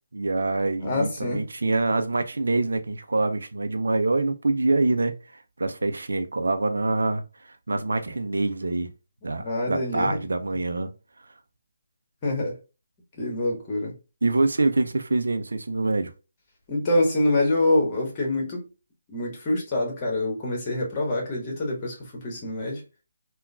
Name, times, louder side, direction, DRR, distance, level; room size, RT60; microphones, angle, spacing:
voice 1, 0.1-5.2 5.6-8.9 9.2-10.9 14.2-16.1, right 2 dB, 70° right, 0.4 m, -25 dB
voice 2, 0.8-1.4 9.4-10.2 12.2-12.5 13.2-13.9 16.7-18.6 19.1-22.8, left 1 dB, 25° left, 1.3 m, -25 dB
3.6 x 2.2 x 2.3 m
figure-of-eight pair, 155°, 0 cm